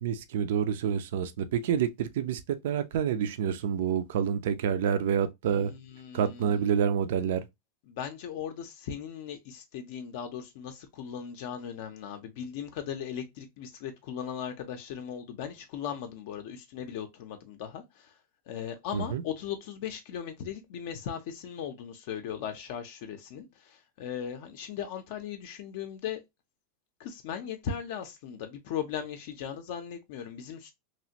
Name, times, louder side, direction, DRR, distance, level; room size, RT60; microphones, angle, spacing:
voice 1, 0.0-5.7 6.1-7.5 18.9-19.2, right 8 dB, 65° right, 0.4 m, -28 dB
voice 2, 5.6-6.5 7.9-18.1 18.5-26.2 27.0-30.7, left 8 dB, 50° left, 0.5 m, -38 dB
3.0 x 2.5 x 2.7 m
supercardioid pair, 175°, 0 cm